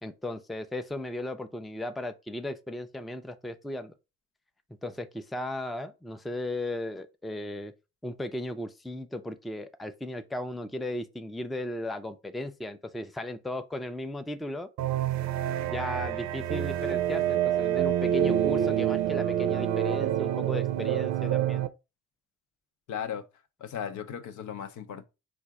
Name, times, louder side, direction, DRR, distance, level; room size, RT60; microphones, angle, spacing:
voice 1, 0.0-3.9 4.8-7.7 8.0-14.7 15.7-21.7, left 1 dB, ahead, 0.4 m, -36 dB
sound 1, 14.8-21.7, right 11 dB, 65° right, 0.5 m, -27 dB
voice 2, 22.9-23.2 23.6-25.1, left 8 dB, 75° left, 0.7 m, -36 dB
4.3 x 2.5 x 4.6 m
cardioid pair, 90°, 30 cm